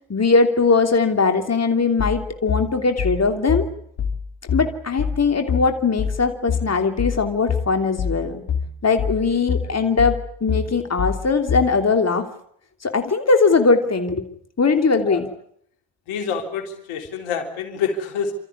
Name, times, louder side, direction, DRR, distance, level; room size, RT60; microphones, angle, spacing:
voice 1, 0.1-3.7 4.5-8.4 8.8-12.3 12.8-14.2 14.6-15.3, left 4 dB, 30° left, 5 dB, 3.1 m, -20 dB
sound 1, 2.0-11.8, left 6 dB, 65° left, 3.7 m, -25 dB
voice 2, 16.1-18.3, left 6 dB, 80° left, 5 dB, 3.6 m, -27 dB
29.0 x 14.0 x 9.7 m, 0.70 s
supercardioid pair, 60°, 49 cm